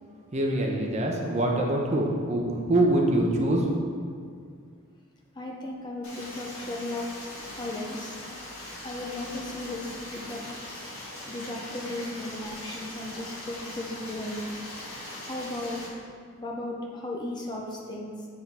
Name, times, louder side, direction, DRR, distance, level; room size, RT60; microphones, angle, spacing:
voice 1, 0.3-3.6, right 1 dB, 30° right, 0 dB, 0.6 m, -24 dB
voice 2, 5.4-7.1 7.4-8.2 8.8-14.6 15.3-15.8 16.4-18.3, left 1 dB, 20° left, -1 dB, 0.5 m, -36 dB
Stream, 6.0-15.9, left 1 dB, 75° left, 1.6 m, -41 dB
7.9 x 3.7 x 4.2 m, 2.1 s
head